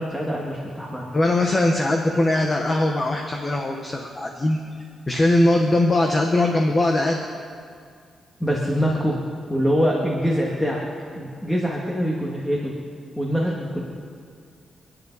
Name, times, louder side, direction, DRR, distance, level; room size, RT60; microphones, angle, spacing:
voice 1, 0.0-1.1 8.4-9.2 9.5-10.8 11.2-12.7 13.2-13.9, equal, 5° left, -3 dB, 2.0 m, -24 dB
voice 2, 1.1-4.6 5.1-7.2, left 1 dB, 25° left, 2 dB, 1.2 m, -20 dB
29.0 x 10.0 x 4.1 m, 2.2 s
cardioid pair, 125°, 0 cm